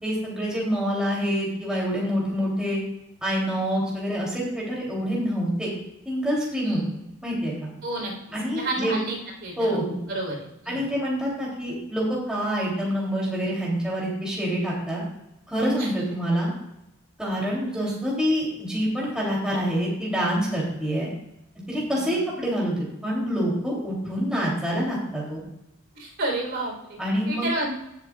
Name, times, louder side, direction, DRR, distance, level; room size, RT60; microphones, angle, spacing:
voice 1, 0.0-2.8 3.2-5.7 6.0-6.8 7.2-7.7 8.3-9.0 9.6-10.0 10.7-15.0 15.5-16.5 17.2-21.1 21.7-25.4 27.0-27.4, equal, 5° right, -5 dB, 3.0 m, -26 dB
voice 2, 7.8-8.1 8.6-9.8 10.1-10.8 15.8-15.9 22.0-22.3 25.9-27.0 27.3-27.7, right 2 dB, 55° right, -1 dB, 3.8 m, -30 dB
18.5 x 8.2 x 2.4 m, 0.87 s
head